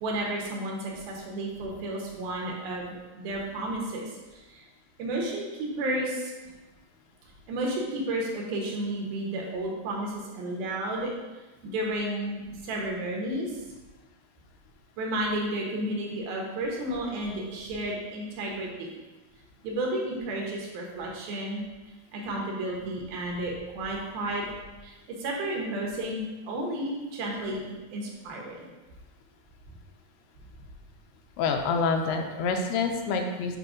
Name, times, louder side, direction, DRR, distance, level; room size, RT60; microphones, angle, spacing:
voice 1, 0.0-4.6 5.0-6.3 7.5-11.1 11.6-13.6 15.0-19.0 19.6-21.6 22.1-24.5 24.8-24.9 25.2-27.6 27.9-28.7, right 1 dB, 75° right, -2 dB, 2.8 m, -32 dB
voice 2, 31.4-33.6, left 4 dB, 90° left, 4 dB, 2.6 m, -27 dB
8.5 x 3.1 x 4.9 m, 1.1 s
omnidirectional pair, 4.5 m